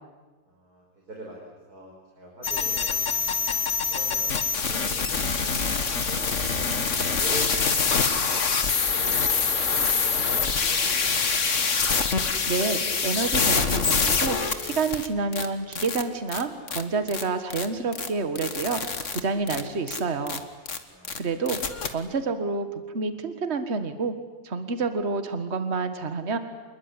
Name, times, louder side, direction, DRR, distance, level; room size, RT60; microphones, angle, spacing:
voice 1, 0.5-1.4 1.7-3.4 3.9-6.7 7.1-8.6 9.0-11.0 11.4-11.6 20.9-21.1, right 1 dB, 75° right, -1 dB, 5.4 m, -43 dB
sound 1, 2.4-15.1 15.3-15.5 15.7-16.0 16.3-16.4 16.7-16.8 17.1-17.2 17.5-17.7 17.9-18.1 18.4-19.2 19.5-19.6 19.9-20.0 20.3-20.4 20.7-20.8 21.0-21.2 21.5-21.9, left 5 dB, 50° left, 1.9 m, -25 dB
voice 2, 12.5-18.8 19.1-20.4 21.2-21.6 21.8-22.7 22.9-24.2 24.4-26.4, right 4 dB, 45° right, 9 dB, 1.9 m, -28 dB
27.5 x 21.0 x 9.9 m, 1.2 s
omnidirectional pair, 1.6 m